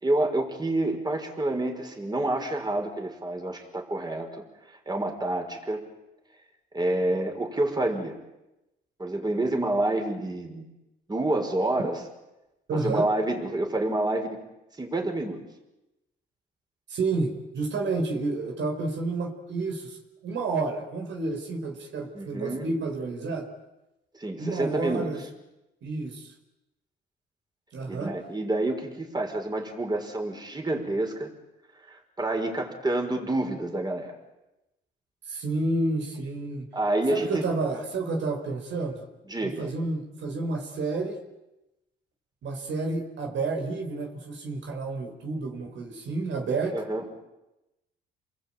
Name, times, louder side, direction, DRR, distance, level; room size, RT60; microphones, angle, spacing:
voice 1, 0.0-5.9 6.7-8.2 9.0-10.7 11.1-12.0 12.7-14.4 14.7-15.4 22.1-22.7 24.1-25.1 27.9-31.3 31.9-34.2 36.7-37.4 39.3-39.7 46.7-47.1, right 2 dB, 20° right, 3 dB, 5.5 m, -28 dB
voice 2, 12.7-13.1 16.9-20.0 20.2-23.5 24.4-25.2 25.8-26.3 27.7-28.2 35.3-36.7 37.1-39.1 39.4-41.2 42.4-46.8, right 3 dB, 70° right, 4 dB, 4.9 m, -30 dB
29.0 x 21.5 x 9.1 m, 0.96 s
cardioid pair, 90°, 20 cm